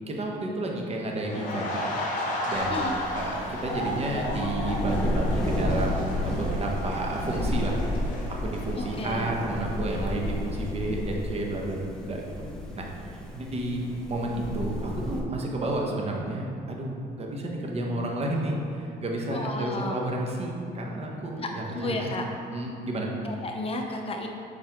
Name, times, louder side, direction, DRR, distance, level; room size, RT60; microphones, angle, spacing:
voice 1, 0.1-1.8 2.5-11.8 12.1-12.5 12.7-12.9 13.1-22.0 22.5-23.1, right 2 dB, 40° right, 0 dB, 1.1 m, -31 dB
sound 1, 1.2-10.1 10.4-10.6, left 1 dB, 50° left, 1.2 m, -34 dB
sound 2, 2.5-15.2, left 1 dB, 5° left, 0.8 m, -32 dB
voice 2, 8.8-9.2 19.3-20.0 21.4-22.2 23.2-24.3, left 2 dB, 35° left, 2 dB, 0.7 m, -32 dB
7.3 x 4.6 x 3.6 m, 2.4 s
cardioid pair, 110°, 17 cm